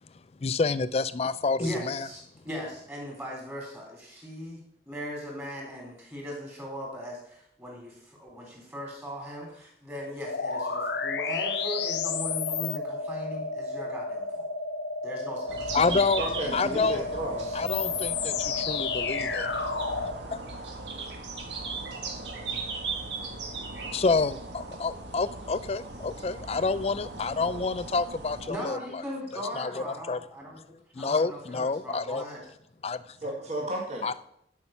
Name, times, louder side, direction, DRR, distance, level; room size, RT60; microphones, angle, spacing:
voice 1, 0.4-2.1 15.7-16.2 16.5-17.0 17.5-19.5 20.3-20.4 23.9-28.8 29.6-30.2 31.0-32.2 32.8-33.0 34.0-34.1, left 4 dB, 35° left, 15 dB, 0.4 m, -28 dB
voice 2, 1.6-4.6 4.9-14.5 15.0-15.8 28.5-32.4 33.2-33.3, equal, 15° right, -3 dB, 3.4 m, -38 dB
sound 1, 10.3-20.2, left 4 dB, 75° left, 0.8 m, -31 dB
sound 2, 15.5-28.5, right 3 dB, 80° right, 1.7 m, -38 dB
voice 3, 16.2-17.6 33.2-34.1, right 1 dB, 40° right, -2 dB, 1.9 m, -33 dB
10.5 x 5.9 x 5.7 m, 0.72 s
head